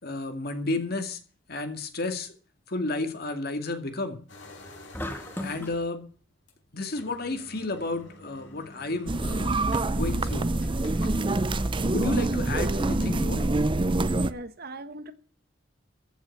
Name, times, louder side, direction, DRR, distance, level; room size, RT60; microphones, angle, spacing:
voice 1, 0.0-1.2 1.5-2.3 2.7-4.2 5.4-6.1 6.7-9.6 9.9-10.5 11.8-13.5, left 2 dB, 55° left, 2.2 m, -32 dB
sound 1, 4.3-6.0 6.5-6.6 6.9-13.1, left 2 dB, 85° left, 4.7 m, -48 dB
sound 2, 4.9-5.8, left 1 dB, 10° left, 2.0 m, -35 dB
sound 3, 9.1-14.3, right 2 dB, 25° right, 0.6 m, -26 dB
voice 2, 14.1-15.1, right 2 dB, 55° right, 1.3 m, -40 dB
14.5 x 6.2 x 8.6 m
head